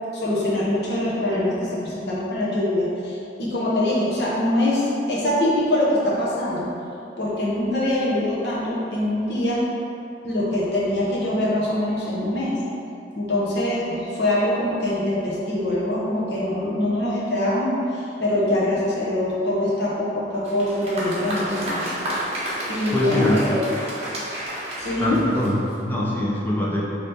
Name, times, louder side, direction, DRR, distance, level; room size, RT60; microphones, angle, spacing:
voice 1, 0.1-6.7 7.2-9.6 10.2-12.6 13.1-21.8 22.7-23.6 24.8-25.2, left 1 dB, 65° left, -7 dB, 1.0 m, -23 dB
Applause, 20.3-25.9, right 1 dB, 35° right, 0.8 m, -31 dB
voice 2, 22.9-23.4 25.0-26.8, equal, 10° left, -5 dB, 0.5 m, -24 dB
3.3 x 3.1 x 4.2 m, 2.7 s
head